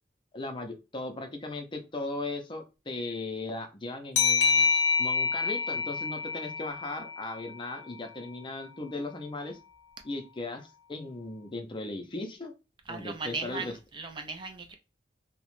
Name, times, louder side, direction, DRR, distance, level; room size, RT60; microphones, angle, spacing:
voice 1, 0.3-4.7 5.0-9.6 10.0-12.5 12.9-13.7, left 2 dB, 30° left, 0.5 m, -37 dB
sound 1, 4.2-7.5, left 5 dB, 85° left, 0.5 m, -27 dB
voice 2, 12.9-14.7, right 4 dB, 25° right, 0.4 m, -37 dB
2.9 x 2.1 x 3.0 m
head